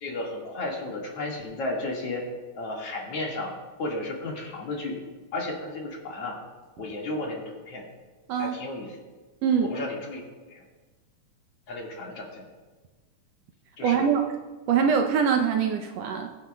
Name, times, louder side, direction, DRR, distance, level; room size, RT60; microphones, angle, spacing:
voice 1, 0.0-2.3 2.5-5.0 5.3-6.4 6.8-7.8 8.4-9.0 9.6-10.6 11.7-12.4 13.8-14.1, left 2 dB, 55° left, -2 dB, 2.7 m, -33 dB
voice 2, 8.3-8.6 9.4-9.8 13.8-14.2 14.7-16.3, right 7 dB, 75° right, 4 dB, 1.6 m, -23 dB
21.5 x 9.3 x 2.2 m, 1.3 s
omnidirectional pair, 3.3 m